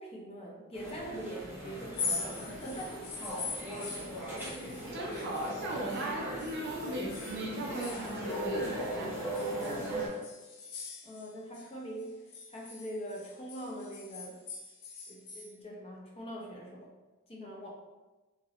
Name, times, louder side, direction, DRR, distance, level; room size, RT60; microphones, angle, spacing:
voice 1, 0.0-3.3 11.0-14.4 15.1-16.9 17.3-17.7, equal, 30° left, -2 dB, 0.5 m, -43 dB
sound 1, 0.7-10.1, right 1 dB, 10° right, 0.9 m, -38 dB
sound 2, 1.8-6.1 6.4-8.9 9.3-11.7 12.0-15.5, left 4 dB, 85° left, 0.5 m, -42 dB
voice 2, 4.9-9.1 9.7-10.0, right 1 dB, 55° right, -1 dB, 0.6 m, -38 dB
3.1 x 2.9 x 2.3 m, 1.2 s
head